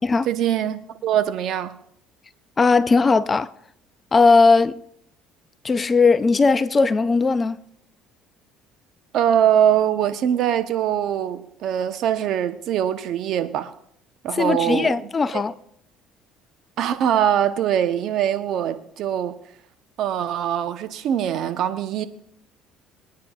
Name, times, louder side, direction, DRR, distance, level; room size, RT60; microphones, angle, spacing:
voice 1, 0.3-1.8 9.1-13.7 14.2-15.4 16.8-19.4 20.0-22.1, right 10 dB, 65° right, 0.9 m, -22 dB
voice 2, 2.6-3.5 4.1-4.8 5.6-7.6 14.3-15.5, left 4 dB, 25° left, 0.5 m, -18 dB
23.5 x 9.6 x 2.4 m
supercardioid pair, 85°, 0 cm